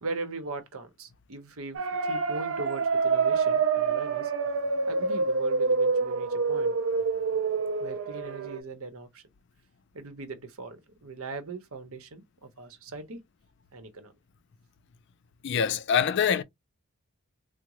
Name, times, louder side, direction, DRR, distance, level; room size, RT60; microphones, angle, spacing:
voice 1, 0.0-4.3 4.9-6.8 7.8-9.2 9.9-13.2 13.7-14.1, right 3 dB, 85° right, 0.8 m, -40 dB
sound 1, 1.7-8.6, right 4 dB, 65° right, 0.5 m, -27 dB
voice 2, 15.4-16.4, left 7 dB, 55° left, 0.4 m, -24 dB
3.6 x 2.0 x 3.0 m
head